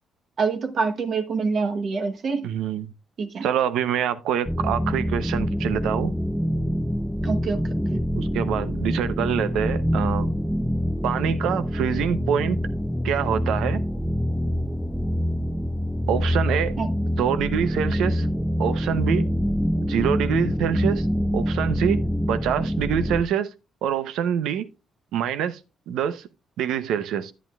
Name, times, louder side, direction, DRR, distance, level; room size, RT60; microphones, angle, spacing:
voice 1, 0.4-2.5 3.2-3.5 7.2-8.0 16.8-16.9, right 4 dB, 55° right, 1.1 m, -26 dB
voice 2, 2.4-2.9 3.4-6.1 8.2-10.3 11.0-12.6 13.0-13.8 16.1-16.8 17.2-18.3 18.6-19.3 19.8-21.1 21.3-22.0 22.3-23.5 23.8-24.7 25.1-25.6 25.9-26.3 26.6-27.3, right 9 dB, 85° right, 0.7 m, -25 dB
sound 1, 4.5-23.2, equal, ahead, 0.4 m, -25 dB
10.5 x 9.3 x 2.4 m
cardioid pair, 90°, 0 cm